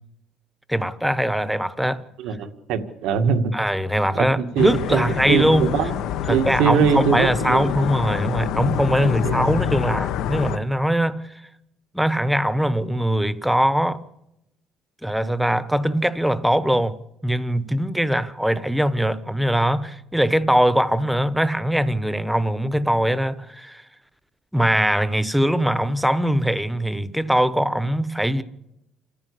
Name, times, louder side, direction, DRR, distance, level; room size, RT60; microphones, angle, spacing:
voice 1, 0.7-2.0 3.5-5.7 6.3-11.2 11.9-14.0 15.0-23.8 24.5-28.4, equal, ahead, 1.0 m, -21 dB
voice 2, 2.2-3.5 4.1-6.0 6.3-7.6 9.0-9.3, right 7 dB, 80° right, 1.8 m, -22 dB
sound 1, 4.6-10.6, left 10 dB, 75° left, 1.1 m, -26 dB
27.5 x 15.0 x 8.5 m
cardioid pair, 125°, 0 cm